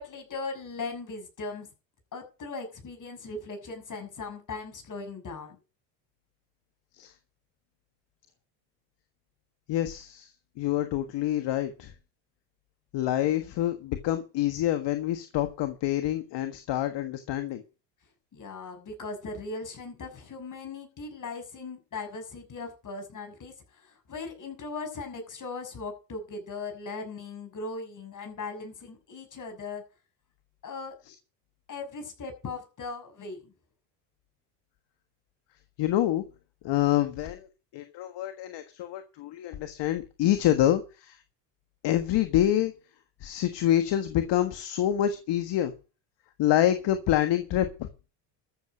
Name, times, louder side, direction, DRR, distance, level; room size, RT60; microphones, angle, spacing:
voice 1, 0.0-1.7 2.1-5.6 13.3-13.5 18.3-29.8 30.6-30.9 31.7-33.5, left 3 dB, 40° left, 6 dB, 6.4 m, -38 dB
voice 2, 9.7-10.3 10.6-11.9 12.9-17.6 35.8-36.2 36.6-37.5 37.7-41.2 41.8-42.7 43.2-45.7 46.4-47.9, left 12 dB, 60° left, 8 dB, 1.6 m, -26 dB
13.5 x 7.8 x 6.3 m, 0.33 s
supercardioid pair, 90°, 49 cm